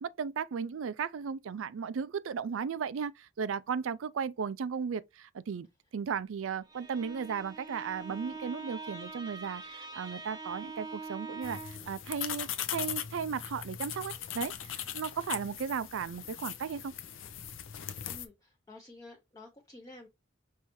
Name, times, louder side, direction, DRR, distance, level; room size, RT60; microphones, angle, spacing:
voice 1, 0.0-5.7 5.9-16.9, right 6 dB, 80° right, 0.4 m, -35 dB
Bowed string instrument, 6.6-11.9, right 3 dB, 20° right, 0.8 m, -44 dB
sound 1, 11.4-18.3, left 10 dB, 75° left, 0.6 m, -39 dB
voice 2, 18.0-20.1, left 2 dB, 20° left, 0.7 m, -51 dB
5.5 x 3.2 x 3.0 m
head